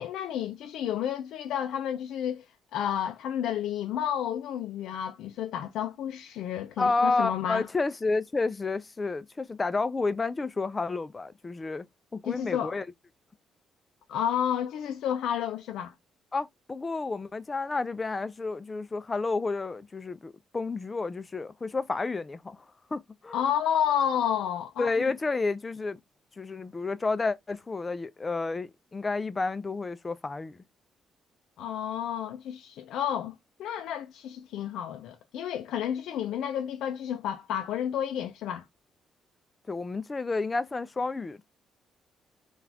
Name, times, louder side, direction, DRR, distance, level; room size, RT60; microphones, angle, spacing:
voice 1, 0.0-2.4 2.7-7.7 12.2-12.7 14.1-15.9 23.3-24.9 31.6-33.3 33.6-38.6, left 9 dB, 80° left, 0.4 m, -31 dB
voice 2, 6.8-11.9 12.1-12.8 16.3-22.6 22.9-23.4 24.8-26.0 26.4-30.6 39.7-41.4, left 3 dB, 25° left, 0.4 m, -30 dB
3.9 x 2.4 x 2.8 m
cardioid pair, 90°, 0 cm